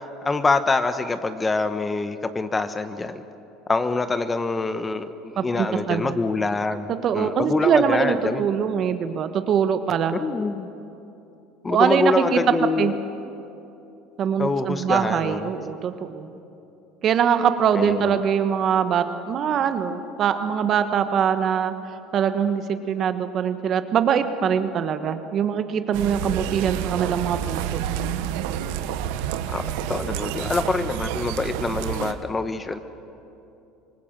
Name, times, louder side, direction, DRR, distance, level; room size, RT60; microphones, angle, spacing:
voice 1, 0.2-3.2 3.7-8.5 10.1-10.7 11.6-13.0 14.4-15.5 17.7-18.2 29.5-32.8, left 3 dB, 20° left, 11 dB, 1.1 m, -25 dB
voice 2, 5.4-6.0 7.0-10.1 11.7-12.4 12.8-12.9 14.2-16.3 17.0-21.7 22.1-27.8, right 8 dB, 45° right, 9 dB, 1.4 m, -23 dB
sound 1, 25.9-32.1, right 10 dB, 80° right, 1.2 m, -29 dB
25.5 x 19.5 x 7.6 m, 2.9 s
supercardioid pair, 105°, 0 cm